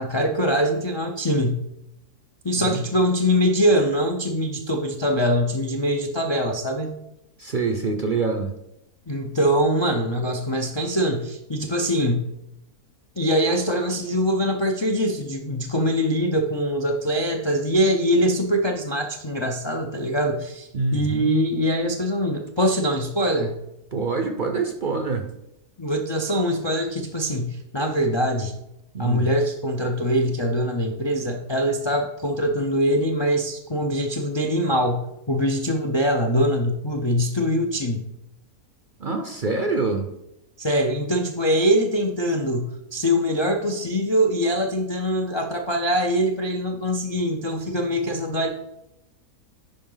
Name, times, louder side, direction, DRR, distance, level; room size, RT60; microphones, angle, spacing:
voice 1, 0.0-1.6 2.4-6.9 9.1-12.3 13.2-23.5 25.8-28.5 29.0-38.0 40.6-48.5, equal, 40° left, 3 dB, 0.3 m, -23 dB
voice 2, 7.4-8.5 20.7-21.3 23.9-25.3 28.9-29.3 39.0-40.1, right 4 dB, 45° right, 4 dB, 0.7 m, -25 dB
10.5 x 4.8 x 3.9 m, 0.85 s
omnidirectional pair, 1.6 m